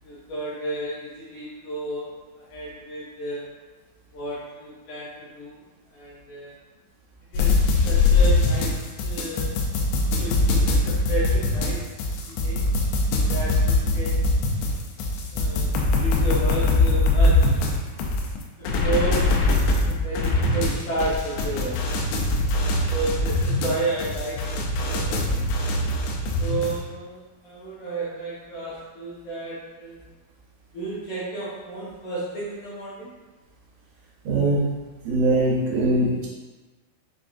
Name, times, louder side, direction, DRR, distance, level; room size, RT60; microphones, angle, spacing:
voice 1, 0.0-3.5 4.1-5.6 5.9-6.5 7.3-9.6 10.2-11.9 12.3-12.6 13.3-14.4 15.3-17.6 18.6-19.4 19.8-21.9 22.9-25.5 26.4-30.0 30.7-33.1, right 2 dB, 70° left, -11 dB, 1.9 m, -32 dB
sound 1, 7.3-26.8, left 2 dB, 85° left, 2.6 m, -22 dB
voice 2, 34.2-34.6 35.0-36.3, right 2 dB, 90° right, -5 dB, 3.2 m, -21 dB
6.9 x 2.5 x 2.4 m, 1.3 s
omnidirectional pair, 4.8 m